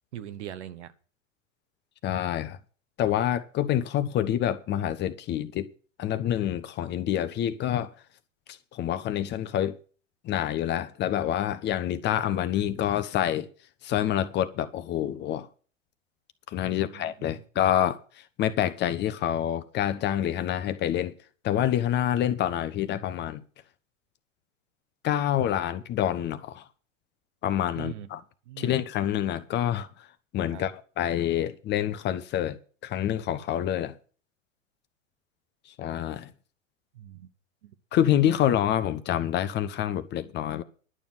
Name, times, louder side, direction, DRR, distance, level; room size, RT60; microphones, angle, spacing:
voice 1, 0.1-0.9 16.6-17.4 27.7-28.1 28.5-28.8 30.5-30.6 36.9-37.3 37.6-37.8, right 11 dB, 60° right, 1.3 m, -41 dB
voice 2, 2.0-2.6 3.0-5.7 6.0-7.9 8.5-9.8 10.2-13.5 13.8-15.5 16.5-18.0 18.4-21.1 21.4-23.4 25.0-26.6 27.4-28.2 28.6-29.9 30.3-33.9 35.8-36.3 37.9-40.6, left 11 dB, 25° left, 0.9 m, -27 dB
11.5 x 7.0 x 7.7 m
figure-of-eight pair, 95°, 39 cm